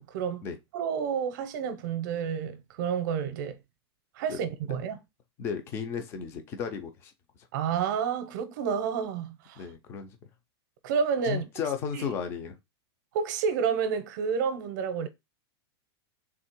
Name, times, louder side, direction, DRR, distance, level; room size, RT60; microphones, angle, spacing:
voice 1, 0.0-0.4 0.7-3.6 4.2-5.0 7.5-9.6 10.8-11.5 11.9-12.0 13.1-15.1, right 7 dB, 45° right, 0.7 m, -30 dB
voice 2, 5.4-7.1 9.6-10.2 11.2-12.6, left 6 dB, 15° left, 0.4 m, -34 dB
3.6 x 2.8 x 4.4 m
supercardioid pair, 180°, 14 cm